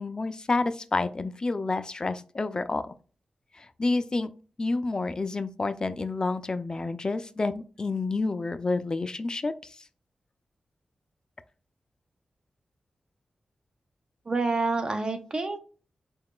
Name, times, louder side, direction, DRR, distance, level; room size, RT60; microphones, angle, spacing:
voice 1, 0.0-2.9 3.8-4.3 4.6-9.5, left 3 dB, 35° left, 12 dB, 0.3 m, -29 dB
voice 2, 14.3-15.6, right 3 dB, 40° right, 6 dB, 0.5 m, -28 dB
3.8 x 2.3 x 3.6 m, 0.38 s
cardioid pair, 70°, 2 cm